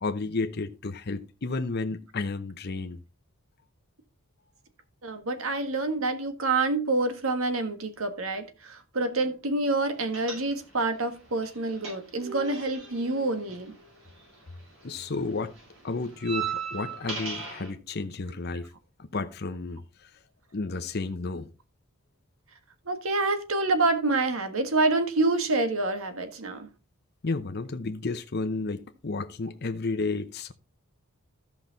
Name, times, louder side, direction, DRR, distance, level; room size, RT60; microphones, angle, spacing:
voice 1, 0.0-3.0 14.8-15.5 15.8-18.7 19.0-20.2 20.5-21.5 27.2-30.5, left 3 dB, 50° left, 0.7 m, -32 dB
voice 2, 5.0-13.7 22.9-26.7, right 2 dB, 75° right, 1.5 m, -27 dB
sound 1, 10.1-10.9 11.2-14.6 14.8-17.7, right 6 dB, 60° right, 5.5 m, -37 dB
13.5 x 5.9 x 3.9 m
head